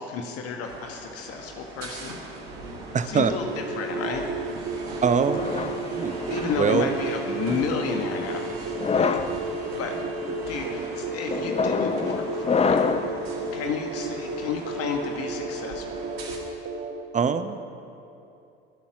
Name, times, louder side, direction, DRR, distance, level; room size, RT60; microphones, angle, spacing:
voice 1, 0.0-2.2 3.0-3.4 3.7-4.2 6.3-8.6 8.9-9.2 9.8-10.0 10.3-12.8 13.3-16.1, left 5 dB, 50° left, 3 dB, 1.4 m, -31 dB
sound 1, 0.6-16.4, right 3 dB, 75° right, 2.1 m, -39 dB
voice 2, 2.9-3.3 5.0-5.5 5.9-6.2 6.6-6.9 17.1-17.6, right 6 dB, 25° right, 10 dB, 0.8 m, -23 dB
sound 2, 3.4-17.0, right 3 dB, 40° right, 1.4 m, -33 dB
sound 3, 5.3-6.7 7.5-7.8 8.7-9.3 10.0-10.3 11.3-13.2, left 5 dB, 20° left, 0.7 m, -26 dB
21.0 x 7.2 x 6.0 m, 2.7 s
hypercardioid pair, 65°, 30 cm